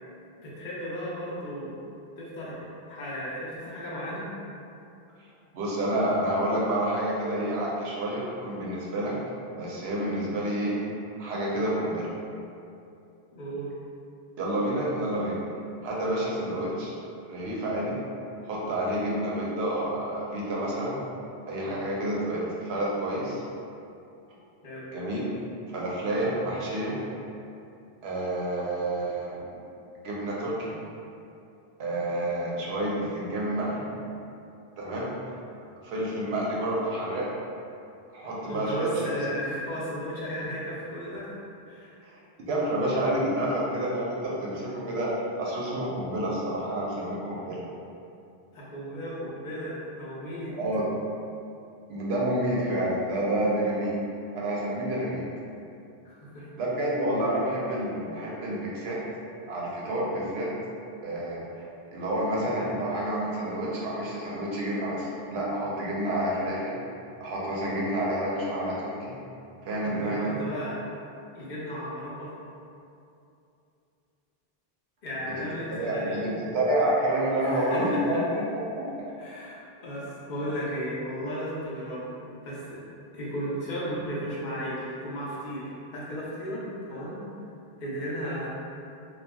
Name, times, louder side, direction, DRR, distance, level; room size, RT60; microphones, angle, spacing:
voice 1, 0.4-1.7 2.2-4.2 13.3-13.7 24.6-24.9 29.4-29.6 38.4-41.3 41.7-42.0 48.5-50.5 56.0-56.4 69.8-70.8 71.3-72.4 75.0-76.3 77.4-78.2 79.2-82.1 82.4-82.8 83.1-87.2 87.8-88.5, equal, 55° left, -6 dB, 0.7 m, -35 dB
voice 2, 5.5-9.1 9.5-10.8 11.2-12.1 14.4-15.4 15.8-16.9 17.3-17.9 18.4-21.0 21.5-23.4 24.9-25.3 25.7-27.0 28.0-29.4 30.0-30.7 31.8-33.8 34.8-35.1 35.8-37.3 38.1-38.9 42.0-42.2 42.5-45.1 45.4-47.6 50.6-50.8 51.9-53.9 54.3-55.2 56.6-59.0 59.5-60.5 61.0-61.6 61.9-66.8 67.2-69.2 69.6-70.3 75.4-75.5 75.7-78.8, right 1 dB, 85° right, -5 dB, 0.8 m, -29 dB
2.7 x 2.3 x 2.2 m, 2.6 s
omnidirectional pair, 1.0 m